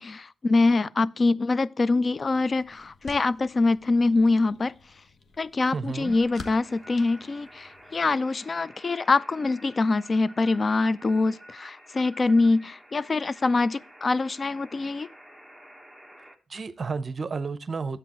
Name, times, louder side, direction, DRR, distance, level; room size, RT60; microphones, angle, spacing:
voice 1, 0.0-4.7 5.4-15.1, left 3 dB, 35° left, 0.3 m, -24 dB
sound 1, 1.9-8.1, left 4 dB, 50° left, 1.1 m, -49 dB
voice 2, 5.7-6.2 16.5-18.0, right 4 dB, 40° right, 0.7 m, -32 dB
sound 2, 6.0-16.4, equal, 10° left, 1.4 m, -50 dB
10.0 x 7.8 x 3.0 m
cardioid pair, 85°, 0 cm